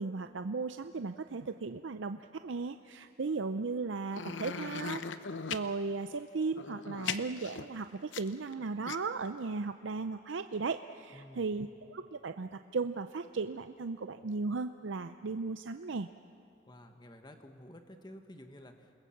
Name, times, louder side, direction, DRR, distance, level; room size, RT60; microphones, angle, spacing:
voice 1, 0.0-5.0 5.5-16.1, right 4 dB, 80° right, 9 dB, 0.6 m, -36 dB
sound 1, 4.1-5.7 6.5-8.5 8.9-9.0, left 6 dB, 80° left, 0.9 m, -38 dB
voice 2, 11.1-11.5 16.7-19.0, left 1 dB, 25° left, 6 dB, 1.4 m, -52 dB
28.5 x 20.5 x 7.3 m, 2.7 s
head